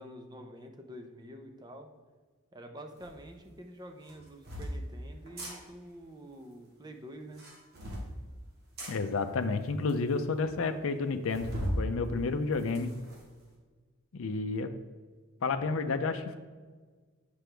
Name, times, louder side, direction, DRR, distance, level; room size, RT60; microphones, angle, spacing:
voice 1, 0.0-1.9 2.5-7.4, equal, 20° right, 4 dB, 0.7 m, -47 dB
sound 1, 3.0-3.1 4.0-4.7 5.3-5.5 7.2-8.1 8.8-8.9 9.6-9.7 9.9-10.0 10.3-10.4 11.3-11.8 12.3-13.2, equal, 50° right, 1.9 m, -37 dB
voice 2, 8.9-11.5 11.8-12.9 14.1-14.7 15.4-16.4, left 4 dB, 70° left, 7 dB, 0.5 m, -30 dB
7.7 x 5.9 x 3.3 m, 1.4 s
head